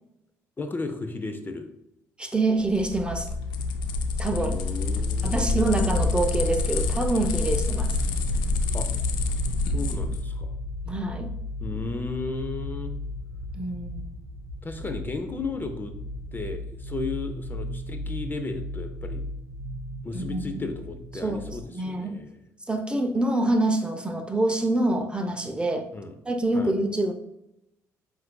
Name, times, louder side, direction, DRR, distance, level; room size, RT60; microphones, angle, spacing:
voice 1, 0.6-1.7 4.5-5.7 8.7-8.9 9.7-10.5 11.6-12.9 14.6-15.9 16.3-19.2 20.0-22.3 25.9-26.1 26.5-26.7, left 3 dB, 25° left, 6 dB, 0.6 m, -34 dB
voice 2, 2.2-3.3 4.2-4.6 5.0-8.0 10.9-11.3 13.5-14.1 20.1-20.7 21.2-22.2 22.7-25.9 26.3-27.1, right 2 dB, 15° right, 5 dB, 0.6 m, -26 dB
sound 1, 2.6-10.2, left 3 dB, 80° left, 0.5 m, -27 dB
sound 2, 7.7-21.7, left 1 dB, 85° right, 0.7 m, -36 dB
7.5 x 2.6 x 2.2 m, 0.80 s
supercardioid pair, 65°, 7 cm